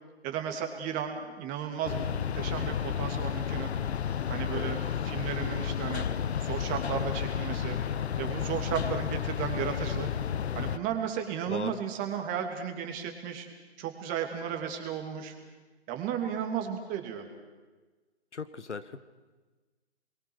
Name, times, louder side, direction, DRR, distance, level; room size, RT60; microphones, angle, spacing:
voice 1, 0.2-3.7 4.3-6.1 6.4-7.8 8.2-10.1 10.5-13.5 13.8-15.3 15.9-17.3, right 8 dB, 25° right, 5 dB, 2.8 m, -34 dB
sound 1, 1.8-10.8, left 8 dB, 70° left, 0.9 m, -32 dB
voice 2, 11.5-11.8 18.3-19.0, left 5 dB, 85° left, 12 dB, 1.4 m, -38 dB
27.5 x 22.5 x 6.4 m, 1.3 s
hypercardioid pair, 140°, 34 cm